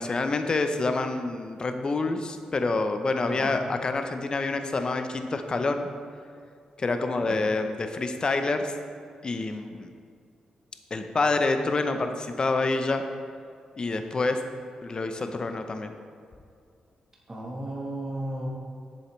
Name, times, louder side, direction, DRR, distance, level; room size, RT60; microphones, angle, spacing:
voice 1, 0.0-5.9 6.8-8.7 9.2-9.9 10.9-13.0 13.8-14.4 14.8-15.9, left 3 dB, 35° left, 7 dB, 0.6 m, -27 dB
voice 2, 3.3-3.6 7.3-7.4 17.3-18.5, right 1 dB, 25° right, -3 dB, 1.1 m, -34 dB
7.4 x 7.1 x 3.1 m, 2.3 s
cardioid pair, 90°, 2 cm